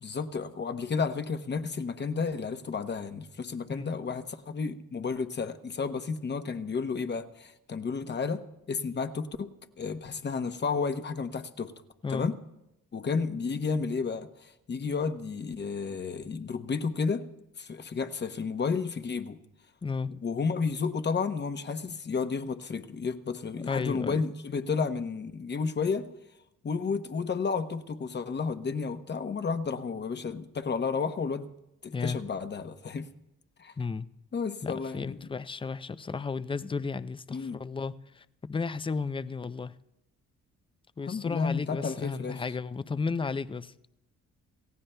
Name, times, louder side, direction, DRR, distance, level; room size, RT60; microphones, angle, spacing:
voice 1, 0.0-11.7 12.1-12.4 12.9-17.2 17.6-19.4 20.0-26.1 26.6-31.5 31.8-33.1 33.6-33.7 34.3-35.3 37.3-37.6 41.0-42.4, left 5 dB, 35° left, 0.9 m, -32 dB
voice 2, 23.7-24.2 31.9-32.2 33.8-34.1 34.6-39.7 41.0-43.7, left 4 dB, 15° left, 0.4 m, -33 dB
28.0 x 15.5 x 2.2 m
cardioid pair, 90°, 30 cm